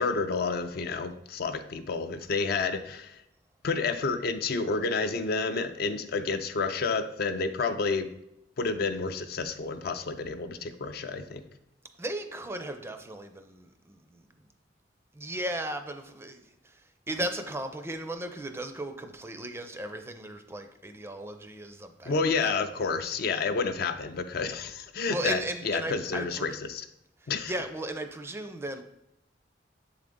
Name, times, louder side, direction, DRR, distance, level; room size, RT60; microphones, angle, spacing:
voice 1, 0.0-3.2 3.6-8.1 8.6-11.4 22.1-25.4 25.6-26.9 27.3-27.5, left 4 dB, 55° left, 9 dB, 0.4 m, -30 dB
voice 2, 12.0-14.3 15.1-22.3 25.1-26.6 27.2-28.8, right 1 dB, 15° right, 7 dB, 0.4 m, -36 dB
7.2 x 3.8 x 3.6 m, 0.84 s
head